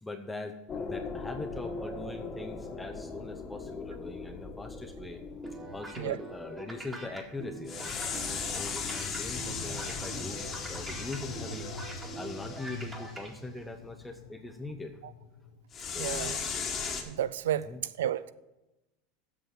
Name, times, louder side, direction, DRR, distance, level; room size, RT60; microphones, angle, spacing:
voice 1, 0.0-5.2 5.7-11.7 12.2-15.0 15.8-16.4 17.7-17.8, left 2 dB, 10° left, 5 dB, 0.7 m, -42 dB
sound 1, 0.7-7.1 7.7-13.1 15.7-17.0, left 5 dB, 30° left, 1.5 m, -38 dB
sound 2, 5.4-13.3, right 2 dB, 20° right, 2.1 m, -44 dB
sound 3, 6.8-15.6, left 4 dB, 90° left, 1.1 m, -46 dB
voice 2, 16.0-16.4 17.1-18.3, right 11 dB, 90° right, 17 dB, 0.4 m, -32 dB
8.0 x 6.3 x 7.5 m, 0.99 s
supercardioid pair, 115°, 0 cm